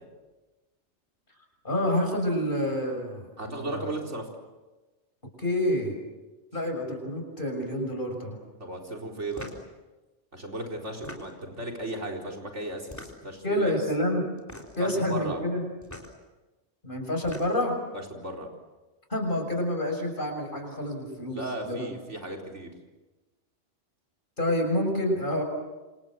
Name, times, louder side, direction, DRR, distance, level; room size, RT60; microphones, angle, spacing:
voice 1, 1.6-3.9 5.4-5.9 6.5-8.4 13.4-14.3 14.8-15.6 16.8-17.8 19.1-21.9 24.4-25.4, left 1 dB, 45° left, 2 dB, 6.8 m, -28 dB
voice 2, 3.4-4.3 8.6-9.5 10.3-12.9 13.2-13.7 14.8-15.4 17.9-18.5 21.3-22.7, right 1 dB, 80° right, 1 dB, 4.7 m, -35 dB
sound 1, 9.3-9.7 10.9-11.6 12.8-13.4 14.4-14.9 15.8-16.1 17.0-17.7, left 1 dB, 15° left, 3.8 m, -43 dB
28.0 x 26.5 x 7.7 m, 1.2 s
omnidirectional pair, 1.2 m